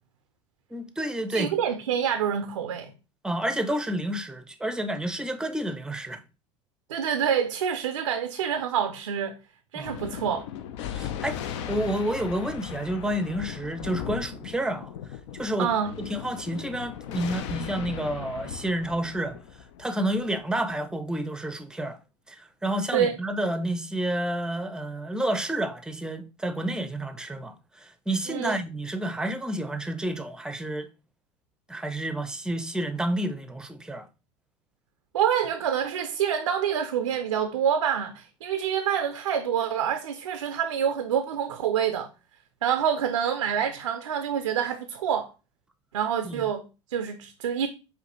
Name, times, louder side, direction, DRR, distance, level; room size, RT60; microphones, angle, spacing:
voice 1, 0.7-1.5 3.2-6.2 9.8-10.0 10.9-15.0 15.3-15.7 16.0-19.4 19.8-22.0 22.3-30.9 31.7-34.1 46.2-46.5, right 1 dB, 5° right, 0.5 m, -30 dB
voice 2, 1.3-2.9 6.9-9.4 9.7-10.4 15.6-15.9 22.9-23.2 28.3-28.5 35.1-42.1 42.6-45.3 45.9-47.7, right 8 dB, 90° right, 0.4 m, -27 dB
Thunder, 9.8-20.7, left 9 dB, 70° left, 0.5 m, -37 dB
4.9 x 2.6 x 3.0 m
hypercardioid pair, 80°, 16 cm